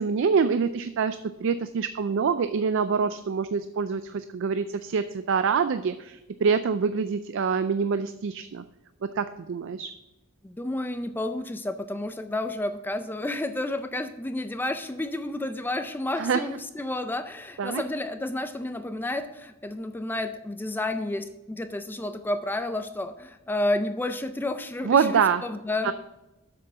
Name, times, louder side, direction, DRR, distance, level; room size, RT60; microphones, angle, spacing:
voice 1, 0.0-8.6 9.0-9.9 16.2-16.4 17.6-17.8 24.8-25.4 25.8-25.9, right 6 dB, 60° right, 12 dB, 0.4 m, -25 dB
voice 2, 10.4-25.9, left 2 dB, 10° left, 9 dB, 0.4 m, -31 dB
7.6 x 6.2 x 5.5 m, 0.97 s
head